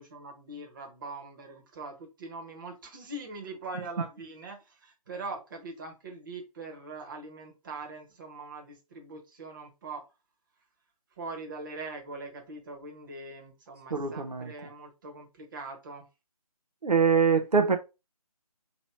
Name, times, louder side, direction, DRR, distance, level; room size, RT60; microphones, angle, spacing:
voice 1, 0.0-10.0 11.2-16.0, right 3 dB, 30° right, 1.2 m, -42 dB
voice 2, 13.9-14.5 16.8-17.8, right 5 dB, 85° right, 0.8 m, -24 dB
3.0 x 3.0 x 4.1 m
figure-of-eight pair, 150°, 20 cm